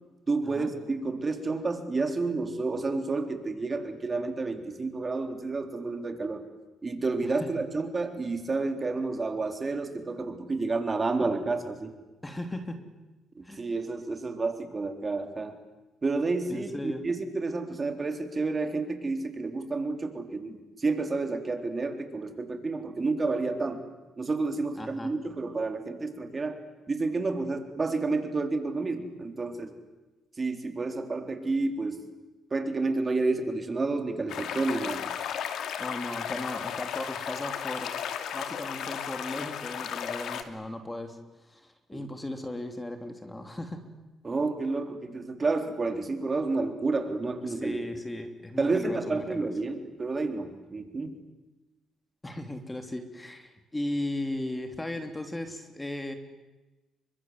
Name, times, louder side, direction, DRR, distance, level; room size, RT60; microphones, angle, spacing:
voice 1, 0.3-6.4 6.8-11.9 13.4-15.6 16.0-23.8 24.2-26.6 26.9-29.7 30.4-32.0 32.5-35.0 41.9-42.1 44.2-47.8 48.6-51.2, right 3 dB, 30° right, 6 dB, 3.9 m, -30 dB
voice 2, 12.2-12.8 13.4-13.6 16.5-17.0 24.8-25.1 35.8-37.9 38.3-43.8 47.5-49.5 52.2-56.1, left 1 dB, 15° left, 7 dB, 3.2 m, -36 dB
sound 1, 34.3-40.4, left 8 dB, 75° left, 2.5 m, -34 dB
30.0 x 24.5 x 7.8 m, 1.1 s
cardioid pair, 90°, 0 cm